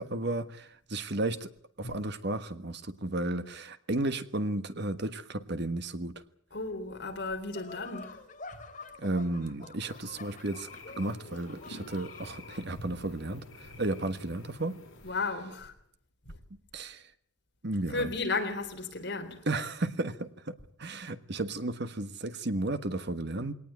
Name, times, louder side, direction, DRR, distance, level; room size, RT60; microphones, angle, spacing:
voice 1, 0.0-1.5 1.8-6.1 9.0-10.7 11.0-14.8 16.7-17.0 17.6-18.1 19.5-20.5 20.8-23.5, right 2 dB, 55° right, 1.4 m, -33 dB
voice 2, 6.5-8.2 15.0-15.7 16.3-16.4 17.9-19.4, left 3 dB, 55° left, 3.7 m, -34 dB
sound 1, 7.5-12.6, left 3 dB, 40° left, 2.7 m, -48 dB
sound 2, 9.9-15.1, left 2 dB, 75° left, 4.4 m, -49 dB
21.0 x 18.5 x 9.4 m
head